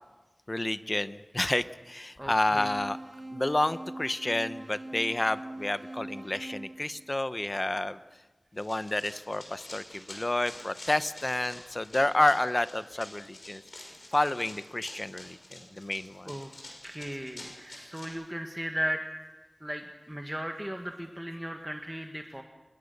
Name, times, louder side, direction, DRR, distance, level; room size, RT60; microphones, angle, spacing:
voice 1, 0.5-3.0 3.3-8.0 8.5-13.6 14.1-16.3, left 1 dB, 40° left, 13 dB, 0.8 m, -30 dB
voice 2, 2.2-2.7 16.3-16.5 16.8-19.0 19.6-22.4, equal, 10° right, 4 dB, 1.5 m, -36 dB
sound 1, 2.5-7.6, right 1 dB, 85° right, 6.9 m, -43 dB
Run, 8.6-18.1, left 1 dB, 80° left, 5.9 m, -47 dB
26.0 x 21.5 x 6.7 m, 1.2 s
wide cardioid pair, 50°, 0 cm